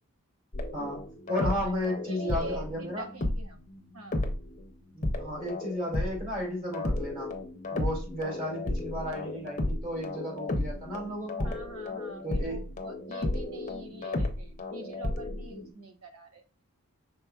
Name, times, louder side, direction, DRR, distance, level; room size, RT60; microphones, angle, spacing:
sound 1, 0.5-4.7 5.0-15.7, left 1 dB, 35° left, 0.7 m, -33 dB
voice 1, 0.7-1.0 1.3-3.1 4.9-7.3 7.7-11.5 12.2-12.6, equal, 40° right, -2 dB, 2.4 m, -34 dB
voice 2, 2.1-3.6 3.9-4.2 11.4-16.4, right 2 dB, 80° right, 5 dB, 1.0 m, -45 dB
5.6 x 3.9 x 2.4 m, 0.36 s
head